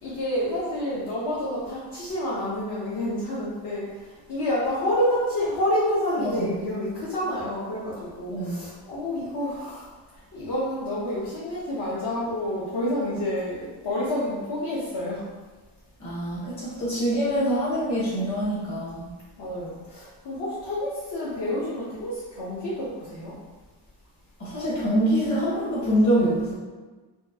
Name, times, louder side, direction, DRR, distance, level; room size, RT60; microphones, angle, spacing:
voice 1, 0.0-15.2 19.4-23.3, left 1 dB, 55° left, -8 dB, 0.8 m, -29 dB
voice 2, 6.2-6.5 8.3-8.6 16.0-19.1 24.4-26.5, right 1 dB, 35° left, -7 dB, 1.3 m, -25 dB
4.4 x 2.3 x 2.7 m, 1.3 s
wide cardioid pair, 165°, 48 cm